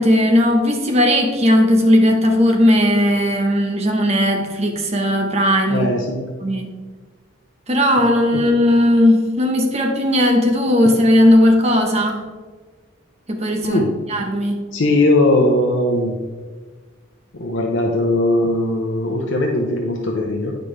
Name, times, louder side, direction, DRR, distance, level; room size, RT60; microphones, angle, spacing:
voice 1, 0.0-5.9 6.4-6.7 7.7-12.2 13.3-13.8 14.1-14.7, left 1 dB, 30° right, 3 dB, 0.9 m, -16 dB
voice 2, 5.7-6.2 8.3-8.4 13.6-13.9 14.7-16.2 17.3-20.6, left 1 dB, 65° left, 1 dB, 0.8 m, -19 dB
9.2 x 5.2 x 3.3 m, 1.4 s
head